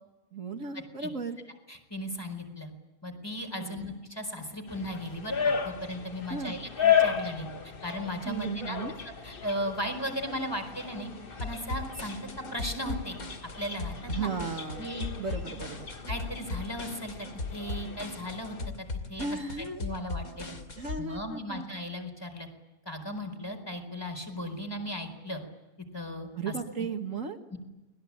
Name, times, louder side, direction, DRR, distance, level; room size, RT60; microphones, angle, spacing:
voice 1, 0.3-1.4 3.6-3.8 6.3-6.5 8.3-8.9 14.1-14.9 15.2-15.9 19.2-19.8 20.8-21.7 26.4-27.4, right 4 dB, 60° right, 5 dB, 2.1 m, -35 dB
voice 2, 1.7-2.7 3.0-7.5 7.8-8.8 9.2-11.1 11.4-12.2 12.5-13.2 13.6-14.3 14.8-15.1 16.1-17.1 17.5-19.3 19.6-20.6 21.0-22.5 22.8-25.4 25.9-26.9 27.5-27.6, equal, 15° left, 5 dB, 4.6 m, -36 dB
sound 1, 4.7-18.7, left 8 dB, 40° left, 1.6 m, -34 dB
sound 2, 11.4-21.0, left 3 dB, 75° left, 3.1 m, -38 dB
30.0 x 21.5 x 8.7 m, 1.1 s
omnidirectional pair, 1.5 m